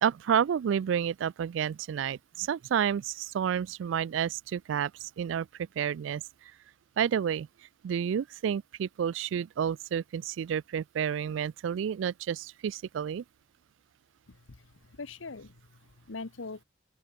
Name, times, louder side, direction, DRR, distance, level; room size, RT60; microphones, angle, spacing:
voice 1, 0.0-6.2 7.0-7.5 7.8-13.2, right 8 dB, 75° right, 0.3 m, -30 dB
voice 2, 14.3-16.6, left 3 dB, 85° left, 1.1 m, -43 dB
open air
head